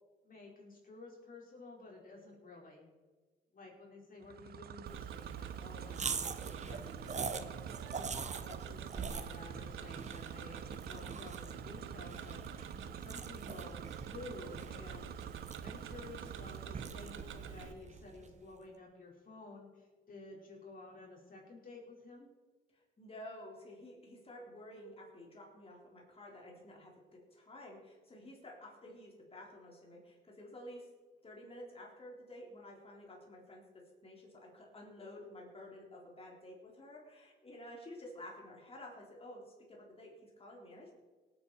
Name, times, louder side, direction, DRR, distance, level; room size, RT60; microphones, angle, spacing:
voice 1, 0.2-2.9 3.5-7.5 7.9-12.6 12.9-15.3 15.6-22.3, left 3 dB, 45° left, -2 dB, 5.1 m, -52 dB
sound 1, 4.2-17.6, right 10 dB, 50° right, 0.5 m, -48 dB
Tick-tock, 4.9-17.7, right 6 dB, 75° right, 1.1 m, -49 dB
sound 2, 5.9-18.4, right 5 dB, 35° right, 1.0 m, -44 dB
voice 2, 22.7-30.9 31.2-33.6 34.0-40.9, left 1 dB, 30° left, -2 dB, 3.6 m, -51 dB
18.5 x 8.8 x 4.6 m, 1.4 s
cardioid pair, 90°, 20 cm